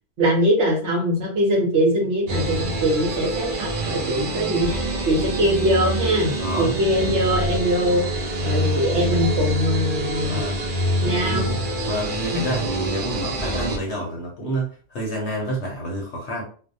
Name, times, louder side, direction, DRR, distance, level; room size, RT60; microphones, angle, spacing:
voice 1, 0.2-10.4 11.0-11.5 12.3-12.4, equal, 55° right, -1 dB, 0.9 m, -22 dB
sound 1, 2.3-13.8, right 1 dB, 85° right, 0.4 m, -26 dB
voice 2, 6.4-6.7 7.0-7.1 10.2-10.6 11.3-11.6 11.8-16.4, right 1 dB, 60° left, -2 dB, 0.8 m, -28 dB
2.5 x 2.0 x 2.6 m, 0.42 s
omnidirectional pair, 1.5 m